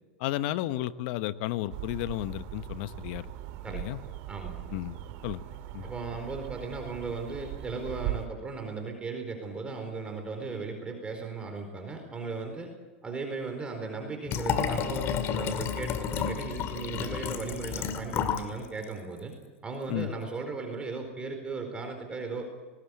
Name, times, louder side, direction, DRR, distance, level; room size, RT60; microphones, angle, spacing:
voice 1, 0.2-3.3 3.7-4.0 4.7-5.4 5.7-5.9 19.9-20.1, left 15 dB, 55° left, 13 dB, 1.1 m, -33 dB
sound 1, 1.7-8.3, right 14 dB, 55° right, 2.2 m, -39 dB
voice 2, 4.3-4.6 5.8-12.7 13.0-19.3 19.6-22.5, right 4 dB, 15° right, 4 dB, 4.3 m, -37 dB
Liquid, 14.3-18.5 18.8-18.9, left 8 dB, 40° left, 2.1 m, -31 dB
20.0 x 19.5 x 8.4 m, 1.3 s
hypercardioid pair, 115°, 6 cm